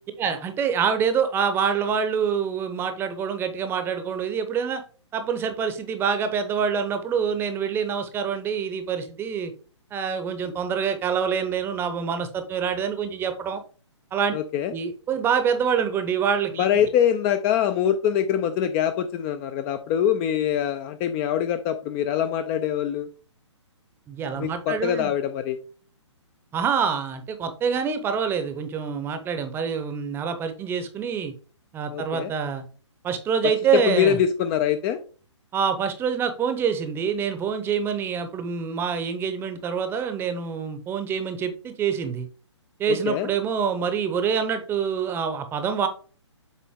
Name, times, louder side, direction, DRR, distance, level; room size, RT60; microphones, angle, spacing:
voice 1, 0.2-4.8 5.1-9.5 9.9-13.6 14.1-14.3 14.7-16.9 24.1-25.1 26.5-31.3 31.7-32.6 33.0-34.2 35.5-42.3 42.8-45.9, right 7 dB, 15° right, 8 dB, 0.7 m, -26 dB
voice 2, 14.3-14.7 16.6-23.1 24.4-25.6 31.9-32.3 33.7-35.0 42.9-43.3, left 9 dB, 20° left, 9 dB, 0.4 m, -24 dB
7.2 x 4.1 x 3.6 m, 0.40 s
figure-of-eight pair, 135°, 16 cm